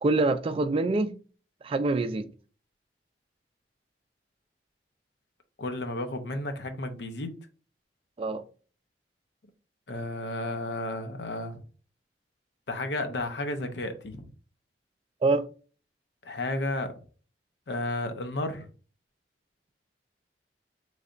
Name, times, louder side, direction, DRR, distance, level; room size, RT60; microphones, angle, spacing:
voice 1, 0.0-1.1 1.6-2.3 8.2-8.4 15.2-15.4, right 3 dB, 30° right, 0.3 m, -25 dB
voice 2, 5.6-7.4 9.9-11.6 12.7-14.3 16.2-16.9 17.7-18.7, left 2 dB, 75° left, 0.6 m, -32 dB
3.9 x 3.2 x 2.4 m
head